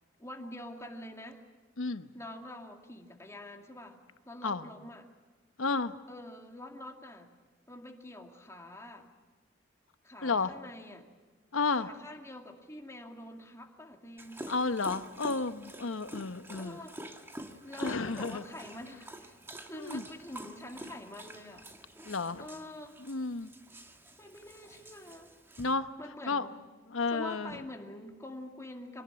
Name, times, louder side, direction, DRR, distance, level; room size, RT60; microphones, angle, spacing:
voice 1, 0.2-1.4 2.1-5.1 6.1-7.3 7.7-9.1 10.0-11.1 11.7-14.8 16.6-16.9 17.6-21.7 22.4-23.0 24.2-25.4 26.0-26.6 27.1-29.0, left 1 dB, 15° left, 2 dB, 2.2 m, -46 dB
voice 2, 1.8-2.1 4.4-4.7 5.6-5.9 10.2-10.5 11.5-11.9 14.5-16.8 17.8-18.4 19.7-20.0 22.1-22.4 23.0-23.5 25.6-25.9 26.3-26.5 26.9-27.6, left 4 dB, 85° left, 11 dB, 1.0 m, -32 dB
Dog, 14.2-25.7, right 1 dB, 10° right, 1.5 m, -47 dB
24.5 x 18.5 x 8.8 m, 1.3 s
head